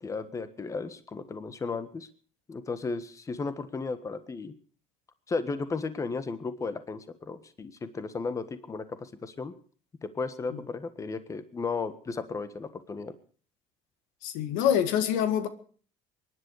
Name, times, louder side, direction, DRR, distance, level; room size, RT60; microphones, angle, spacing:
voice 1, 0.0-2.1 2.5-4.5 5.3-9.5 10.1-13.1, left 4 dB, 25° left, 1.4 m, -34 dB
voice 2, 14.2-15.5, left 9 dB, 85° left, 1.9 m, -26 dB
23.5 x 11.0 x 4.8 m
cardioid pair, 115°, 13 cm